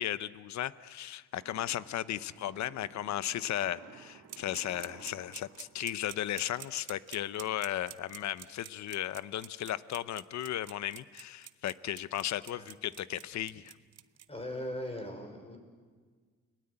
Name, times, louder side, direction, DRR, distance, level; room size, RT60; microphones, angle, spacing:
voice 1, 0.0-13.7, left 12 dB, 65° left, 16 dB, 0.8 m, -35 dB
sound 1, 1.4-6.7, right 8 dB, 85° right, 2.4 m, -55 dB
sound 2, 4.3-14.3, right 11 dB, 55° right, 0.8 m, -47 dB
voice 2, 14.3-15.6, left 1 dB, 20° left, 5 dB, 5.8 m, -39 dB
30.0 x 20.0 x 8.7 m, 1.5 s
cardioid pair, 90°, 30 cm